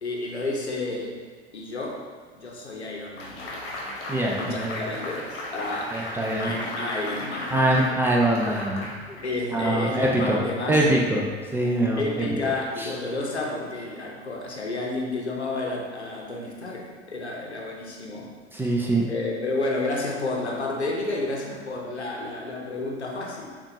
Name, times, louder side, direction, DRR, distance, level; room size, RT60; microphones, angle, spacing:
voice 1, 0.0-1.2 1.5-2.0 2.3-3.5 4.4-6.1 6.4-7.6 9.2-10.9 12.0-18.3 19.1-23.5, left 2 dB, 85° left, -1 dB, 0.8 m, -31 dB
sound 1, 3.2-9.6, left 1 dB, 50° left, 1.0 m, -36 dB
voice 2, 4.1-4.8 5.9-6.5 7.5-8.9 9.5-10.4 10.7-11.3 11.5-12.3 12.8-12.9 18.5-19.0, right 1 dB, 5° right, -3 dB, 0.4 m, -23 dB
7.0 x 2.5 x 2.7 m, 1.5 s
figure-of-eight pair, 80°, 32 cm